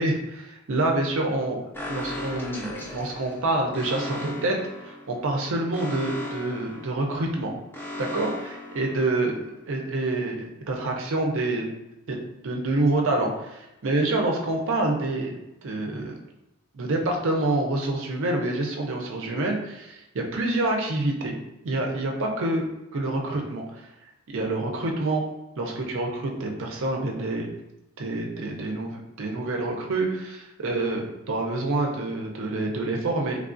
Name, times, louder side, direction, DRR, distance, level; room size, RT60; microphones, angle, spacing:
voice 1, 0.0-1.6 1.9-7.5 8.0-9.4 9.7-11.7 12.1-12.2 12.4-16.1 16.7-21.4 21.6-22.7 22.9-23.9 24.3-25.2 25.6-27.5 28.0-33.4, right 2 dB, 60° right, 1 dB, 0.5 m, -27 dB
Alarm, 1.7-9.5, left 1 dB, 10° left, 0.4 m, -37 dB
3.3 x 2.3 x 2.5 m, 0.90 s
head